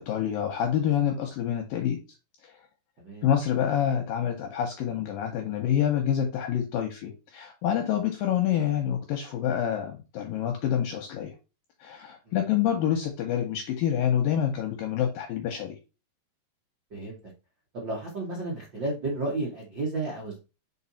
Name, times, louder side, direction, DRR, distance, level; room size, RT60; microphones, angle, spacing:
voice 1, 0.0-2.0 2.4-2.5 3.2-11.3 11.8-15.8, left 9 dB, 75° left, 3 dB, 2.2 m, -27 dB
voice 2, 3.0-3.3 12.3-12.5 16.9-17.2 17.7-20.4, right 2 dB, 90° right, -4 dB, 1.0 m, -32 dB
5.3 x 4.5 x 4.1 m, 0.29 s
omnidirectional pair, 4.9 m